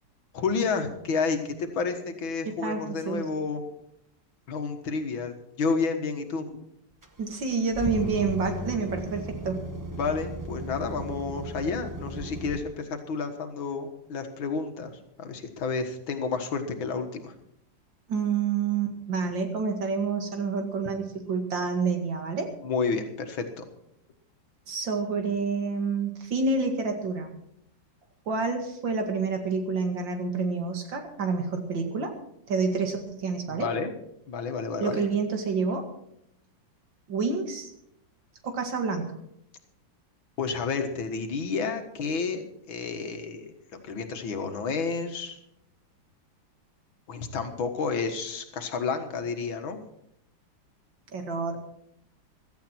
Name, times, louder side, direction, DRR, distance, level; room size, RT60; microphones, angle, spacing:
voice 1, 0.3-3.6 4.5-6.6 10.0-17.3 22.6-23.6 33.5-33.9 34.3-35.0 40.4-43.5 43.8-45.4 47.1-49.8, left 4 dB, 80° left, 6 dB, 2.3 m, -30 dB
voice 2, 2.5-3.2 7.2-9.6 18.1-22.5 24.7-27.4 28.3-32.1 32.5-33.7 34.8-35.9 37.1-37.7 38.4-39.2 51.1-51.7, right 4 dB, 70° right, 5 dB, 2.7 m, -28 dB
sound 1, 7.0-12.6, right 1 dB, 15° right, 0.7 m, -36 dB
16.0 x 13.5 x 4.5 m, 0.75 s
omnidirectional pair, 2.1 m